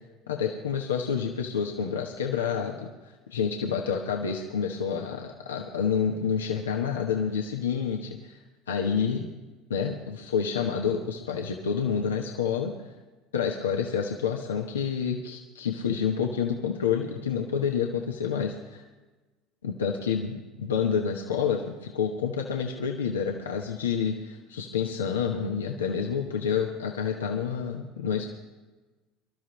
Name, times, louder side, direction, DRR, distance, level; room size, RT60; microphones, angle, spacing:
voice 1, 0.3-2.9 3.3-8.4 8.7-9.3 9.7-12.7 13.3-18.8 19.6-28.3, left 7 dB, 90° left, 1 dB, 1.0 m, -28 dB
23.5 x 12.5 x 3.2 m, 1.2 s
hypercardioid pair, 75°, 0 cm